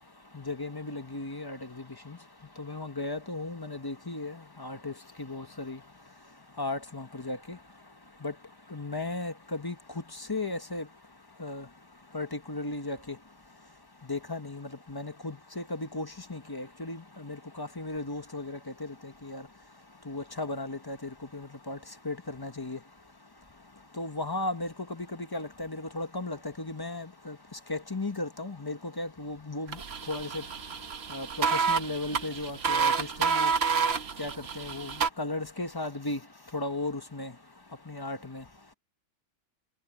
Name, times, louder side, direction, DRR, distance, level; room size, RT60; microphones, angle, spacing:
voice 1, 0.3-1.6 2.1-2.2 2.6-4.9 5.2-5.8 6.6-7.6 8.2-8.3 8.7-9.7 10.3-10.8 11.4-11.6 12.1-13.2 14.1-19.4 20.1-21.0 21.3-21.8 22.0-22.8 24.0-25.1 25.3-27.3 27.7-29.8 30.1-30.4 31.1-33.5 34.2-34.9 35.2-36.2 36.5-37.3 37.9-38.4, left 2 dB, 20° left, 0.6 m, -35 dB
sound 1, 29.7-35.1, right 6 dB, 40° right, 1.0 m, -29 dB
omnidirectional pair, 2.2 m